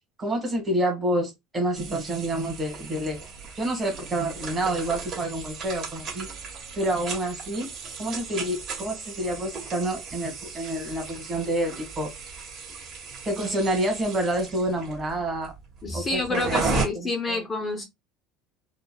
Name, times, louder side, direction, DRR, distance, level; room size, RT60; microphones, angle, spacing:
voice 1, 0.2-3.2 3.5-6.3 6.8-7.7 8.0-12.1 13.2-15.5 15.9-17.4, right 1 dB, 20° right, 1.4 m, -28 dB
sound 1, 1.7-16.9, right 4 dB, 40° right, 1.2 m, -36 dB
voice 2, 15.8-17.8, left 2 dB, 20° left, 0.6 m, -28 dB
3.8 x 2.2 x 2.2 m
cardioid pair, 135°, 0 cm